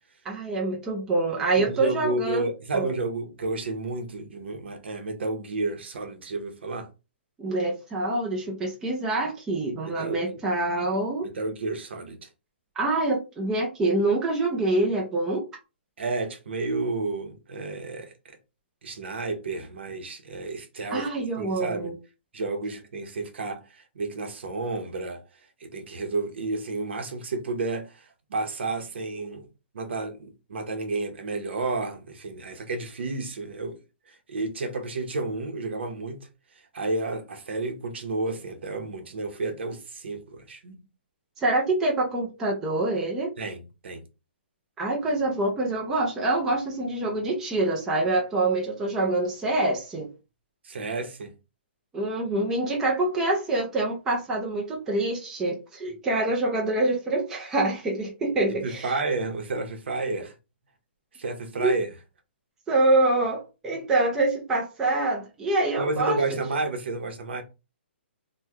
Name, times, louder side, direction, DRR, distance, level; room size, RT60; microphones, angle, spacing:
voice 1, 0.2-2.9 7.4-11.3 12.8-15.5 20.9-21.9 41.4-43.3 44.8-50.1 51.9-59.0 61.6-61.8 62.7-66.2, right 2 dB, 5° right, 0.4 m, -26 dB
voice 2, 1.6-6.9 9.8-10.4 11.2-12.3 16.0-18.4 18.8-21.1 21.4-21.9 22.3-25.2 25.6-29.5 29.7-33.8 34.1-36.2 36.7-40.8 43.4-44.0 50.6-51.3 58.6-60.4 61.1-61.9 65.8-67.4, right 3 dB, 70° right, 0.9 m, -31 dB
3.1 x 2.1 x 3.4 m
hypercardioid pair, 175°, 6 cm